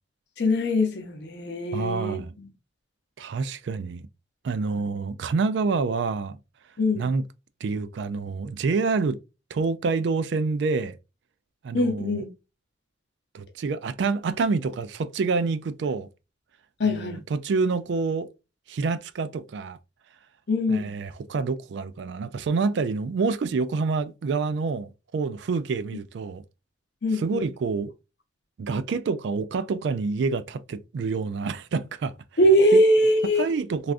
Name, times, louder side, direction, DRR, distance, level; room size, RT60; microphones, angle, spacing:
voice 1, 0.4-2.5 6.8-7.1 11.7-12.3 16.8-17.2 20.5-20.9 27.0-27.5 32.4-33.5, left 1 dB, 65° left, 0.7 m, -22 dB
voice 2, 1.7-2.3 3.2-4.0 4.4-6.4 6.9-7.2 7.6-9.2 9.5-11.0 11.6-12.2 13.3-16.1 16.8-18.3 18.7-19.8 20.7-26.4 27.1-27.9 28.6-32.1 32.7-32.8 33.4-33.9, right 4 dB, 70° right, 0.3 m, -27 dB
3.4 x 2.4 x 2.5 m
head